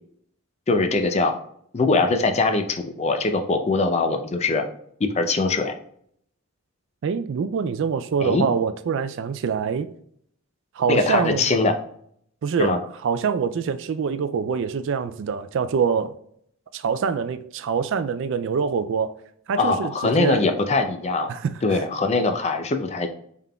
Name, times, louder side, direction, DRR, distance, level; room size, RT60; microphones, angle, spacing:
voice 1, 0.7-1.4 1.7-4.7 5.0-5.7 8.2-8.5 10.9-11.8 12.6-12.8 19.6-21.3 21.6-23.1, left 3 dB, 30° left, 0.4 m, -22 dB
voice 2, 7.0-9.9 10.8-11.4 12.4-16.1 16.7-19.1 19.5-20.5 21.3-21.8, right 6 dB, 55° right, 0.3 m, -25 dB
5.6 x 3.6 x 2.2 m
head